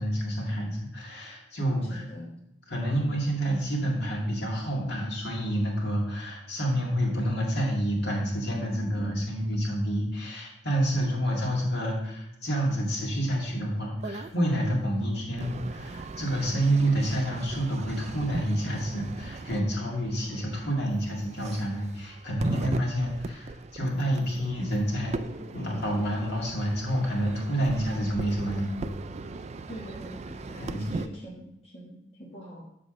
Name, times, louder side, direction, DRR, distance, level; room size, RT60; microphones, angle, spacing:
voice 1, 0.0-2.0 2.7-25.2 25.5-28.8 30.6-31.0, right 1 dB, 60° left, -2 dB, 2.1 m, -28 dB
voice 2, 1.9-2.3 8.5-9.3 20.3-20.5 22.4-22.7 29.7-32.6, equal, 35° left, -5 dB, 1.3 m, -44 dB
sound 1, 14.0-14.4 15.4-31.1, right 3 dB, 35° right, 0.3 m, -39 dB
7.2 x 7.1 x 3.8 m, 0.80 s
head